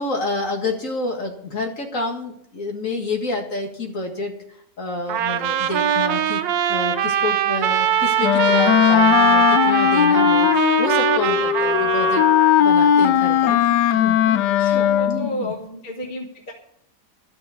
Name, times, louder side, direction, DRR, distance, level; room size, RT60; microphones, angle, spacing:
voice 1, 0.0-6.4 6.7-12.2 12.6-13.6 13.9-14.2 14.6-15.5, left 3 dB, 45° left, 2 dB, 2.2 m, -28 dB
Trumpet, 5.1-12.6, right 10 dB, 85° right, 1.4 m, -22 dB
Wind instrument woodwind instrument, 8.2-15.4, left 10 dB, 75° left, 1.2 m, -18 dB
voice 2, 14.2-16.5, left 1 dB, 30° left, 3 dB, 1.4 m, -32 dB
12.5 x 6.1 x 9.4 m, 0.71 s
omnidirectional pair, 1.9 m